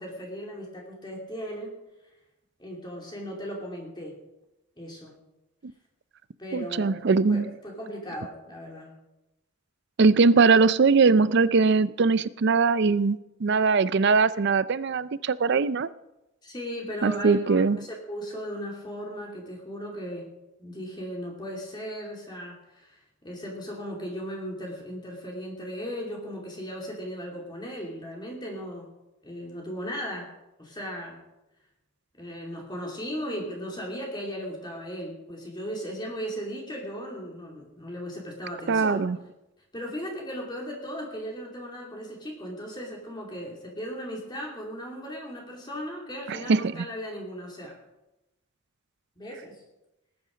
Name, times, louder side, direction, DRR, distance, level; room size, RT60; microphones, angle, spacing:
voice 1, 0.0-1.7 2.6-4.1 4.8-5.2 6.4-7.0 7.3-8.9 16.4-20.3 20.6-23.0 23.2-28.9 29.2-30.3 30.6-31.2 32.2-39.0 39.7-47.8 49.2-49.6, equal, 20° left, -1 dB, 2.7 m, -37 dB
voice 2, 6.5-7.5 10.0-15.9 17.0-17.8 38.7-39.2 46.3-46.8, right 4 dB, 55° right, 17 dB, 0.5 m, -21 dB
19.0 x 9.6 x 5.2 m, 0.95 s
head